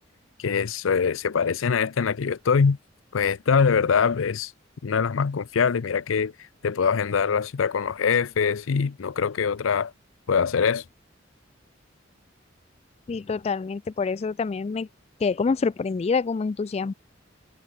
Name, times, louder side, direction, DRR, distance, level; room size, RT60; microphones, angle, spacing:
voice 1, 0.4-2.8 3.1-4.5 4.8-6.3 6.6-9.9 10.3-10.8, left 6 dB, 90° left, 0.5 m, -23 dB
voice 2, 13.1-14.9 15.2-16.9, left 4 dB, 35° left, 0.3 m, -26 dB
head